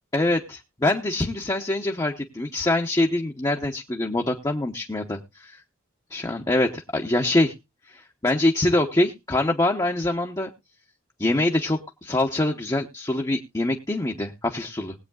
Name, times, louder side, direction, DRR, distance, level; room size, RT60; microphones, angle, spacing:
voice 1, 0.1-5.6 6.1-7.5 7.9-10.5 11.2-14.9, left 2 dB, 15° left, 1 dB, 0.9 m, -24 dB
20.5 x 8.3 x 2.3 m, 0.24 s
head